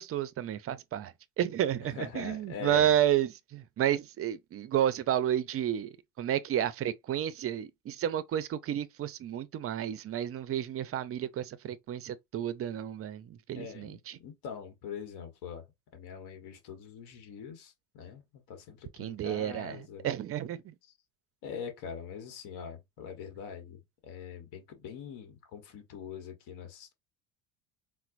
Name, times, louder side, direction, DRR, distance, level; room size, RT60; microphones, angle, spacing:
voice 1, 0.0-14.2 18.9-20.7, right 11 dB, 30° right, 0.5 m, -31 dB
voice 2, 1.9-2.9 13.6-15.6 15.9-20.1 21.4-26.9, left 6 dB, 60° left, 1.3 m, -43 dB
4.2 x 2.1 x 2.5 m
supercardioid pair, 85°, 44 cm